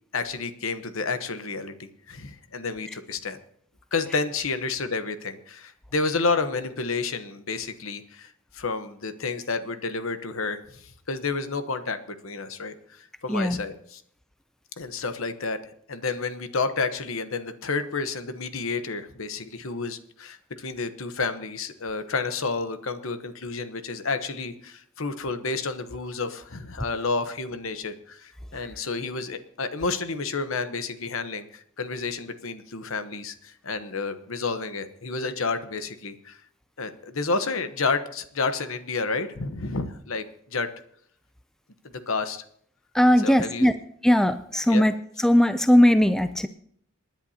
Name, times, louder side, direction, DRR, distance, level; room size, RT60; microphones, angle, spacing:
voice 1, 0.1-3.4 3.9-14.0 14.8-15.6 15.9-36.4 36.8-40.7 42.1-42.4 43.2-43.7 44.7-44.8, left 4 dB, 65° left, 9 dB, 1.0 m, -30 dB
voice 2, 42.9-43.7 44.0-46.5, equal, ahead, 10 dB, 0.4 m, -19 dB
28.0 x 10.5 x 2.8 m, 0.66 s
head